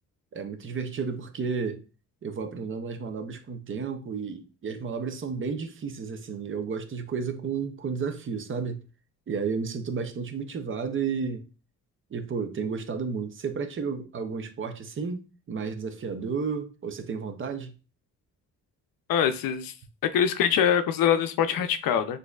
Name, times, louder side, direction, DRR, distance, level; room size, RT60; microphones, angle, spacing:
voice 1, 0.3-1.8 2.2-8.8 9.3-11.4 12.1-17.7, right 5 dB, 40° right, 0.6 m, -32 dB
voice 2, 19.1-19.7 20.0-22.2, left 8 dB, 85° left, 0.5 m, -24 dB
6.3 x 2.6 x 2.3 m
cardioid pair, 120°, 33 cm